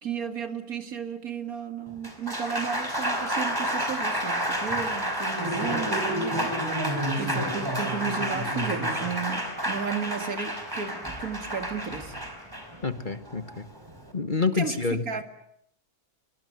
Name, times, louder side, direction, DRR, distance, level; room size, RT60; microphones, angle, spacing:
voice 1, 0.0-6.6 7.2-12.2 14.5-15.2, right 6 dB, 65° right, 9 dB, 2.4 m, -34 dB
Applause, 1.9-14.1, equal, 15° right, 4.8 m, -29 dB
voice 2, 12.8-13.7 14.1-15.2, left 4 dB, 30° left, 10 dB, 1.5 m, -28 dB
26.0 x 24.0 x 9.4 m, 0.70 s
omnidirectional pair, 1.6 m